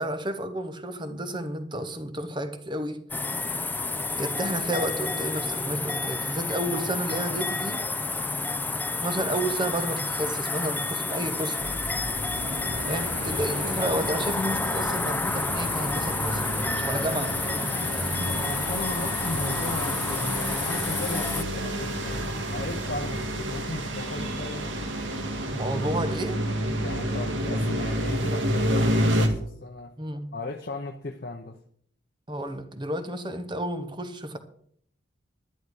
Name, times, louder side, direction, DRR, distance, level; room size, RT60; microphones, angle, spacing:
voice 1, 0.0-3.0 4.2-7.9 9.0-11.8 12.9-18.3 25.5-26.4 30.0-30.3 32.3-34.4, right 1 dB, 25° right, 1.0 m, -31 dB
sound 1, 3.1-21.4, left 3 dB, 10° left, 0.5 m, -30 dB
sound 2, 11.6-29.3, equal, 70° right, 1.8 m, -30 dB
voice 2, 18.2-24.8 26.7-30.0 30.3-31.6, left 2 dB, 50° left, 0.8 m, -36 dB
11.0 x 11.0 x 4.8 m
head